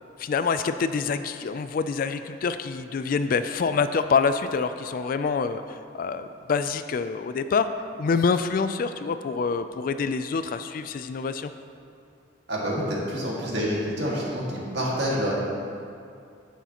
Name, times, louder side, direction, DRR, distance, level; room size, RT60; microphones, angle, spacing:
voice 1, 0.2-7.7 8.0-11.5, left 5 dB, 50° left, 10 dB, 0.3 m, -26 dB
voice 2, 12.5-15.3, equal, 60° right, -5 dB, 2.0 m, -27 dB
9.9 x 9.2 x 2.9 m, 2.4 s
head